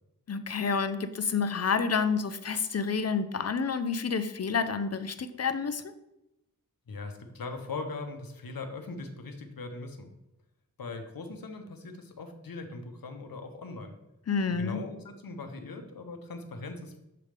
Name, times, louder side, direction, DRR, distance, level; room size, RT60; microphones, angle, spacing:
voice 1, 0.3-5.8 14.3-14.8, left 5 dB, 45° left, 11 dB, 0.5 m, -29 dB
voice 2, 6.9-10.1 10.8-14.0 14.6-17.0, left 3 dB, 85° left, 6 dB, 0.9 m, -40 dB
6.8 x 3.2 x 5.1 m, 0.89 s
wide cardioid pair, 65°, 34 cm